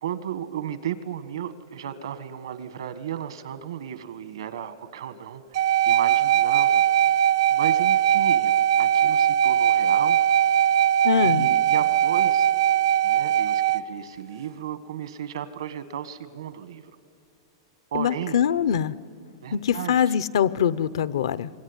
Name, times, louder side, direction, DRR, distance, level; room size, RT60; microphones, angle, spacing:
voice 1, 0.0-6.8 7.1-8.5 8.8-10.2 11.1-12.5 13.0-16.9 17.9-18.4 19.4-20.1, right 9 dB, 85° right, 12 dB, 1.6 m, -34 dB
sound 1, 5.5-13.8, right 10 dB, 65° right, 0.6 m, -20 dB
voice 2, 11.0-11.5 17.9-18.9 19.5-21.5, left 8 dB, 80° left, 17 dB, 0.7 m, -23 dB
25.5 x 22.5 x 9.9 m, 2.5 s
supercardioid pair, 160°, 3 cm